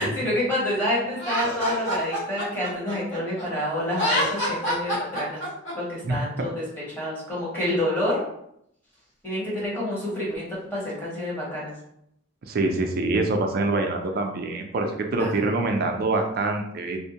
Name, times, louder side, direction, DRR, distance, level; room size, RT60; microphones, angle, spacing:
voice 1, 0.0-5.4 5.7-6.6 7.0-8.2 9.2-11.7 15.2-15.5, left 1 dB, 10° left, -7 dB, 1.0 m, -28 dB
Laughter, 1.2-3.4 3.9-5.7, equal, 35° left, 1.3 m, -27 dB
voice 2, 6.0-6.5 12.5-17.0, right 2 dB, 45° right, 4 dB, 0.4 m, -25 dB
2.5 x 2.1 x 2.8 m, 0.75 s
head